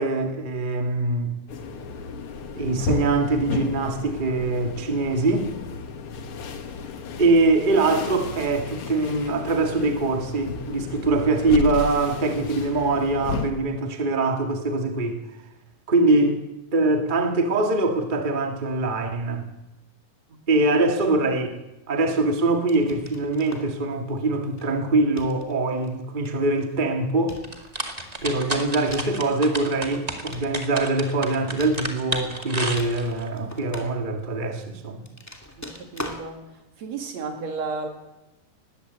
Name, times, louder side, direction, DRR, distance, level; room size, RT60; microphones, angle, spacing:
voice 1, 0.0-1.4 2.5-5.5 7.2-15.2 15.9-16.4 16.7-19.5 20.5-21.6 21.9-27.4 28.2-35.1, right 2 dB, 75° right, 0.4 m, -23 dB
sound 1, 1.5-13.5, left 4 dB, 60° left, 1.5 m, -33 dB
sound 2, 22.7-23.8 24.5-24.8 25.2-25.9 26.2-26.7 27.3-29.3 29.9-31.1 31.6-32.4 32.7-34.3 35.0-36.3, left 1 dB, 10° left, 0.7 m, -41 dB
sound 3, 27.4-33.3, right 1 dB, 25° right, 0.8 m, -31 dB
voice 2, 35.6-36.5 36.8-37.9, right 4 dB, 50° right, 3.1 m, -33 dB
20.0 x 17.0 x 8.0 m
omnidirectional pair, 4.5 m